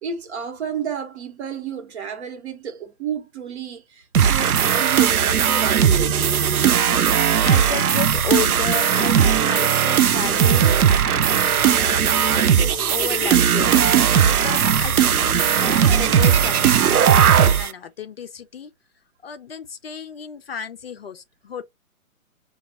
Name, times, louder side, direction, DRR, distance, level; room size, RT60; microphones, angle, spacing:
voice 1, 0.0-6.3, right 7 dB, 50° right, 1.1 m, -31 dB
sound 1, 4.1-17.7, right 8 dB, 85° right, 0.6 m, -18 dB
voice 2, 7.4-10.7 11.1-13.8 14.2-18.7 19.2-21.6, left 8 dB, 45° left, 0.5 m, -33 dB
sound 2, 10.2-16.4, right 1 dB, 5° right, 0.9 m, -40 dB
sound 3, 11.4-14.8, left 1 dB, 30° right, 0.6 m, -38 dB
5.7 x 2.4 x 2.8 m
figure-of-eight pair, 135°, 43 cm